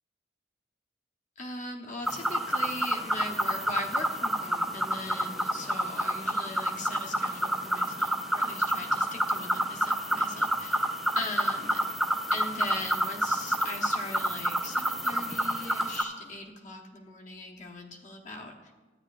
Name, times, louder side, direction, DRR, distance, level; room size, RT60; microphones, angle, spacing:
voice 1, 1.4-12.0 12.3-18.7, left 2 dB, 40° left, 2 dB, 1.0 m, -40 dB
sound 1, 2.1-16.0, right 1 dB, ahead, 0.4 m, -29 dB
13.5 x 9.4 x 2.4 m, 1.3 s
head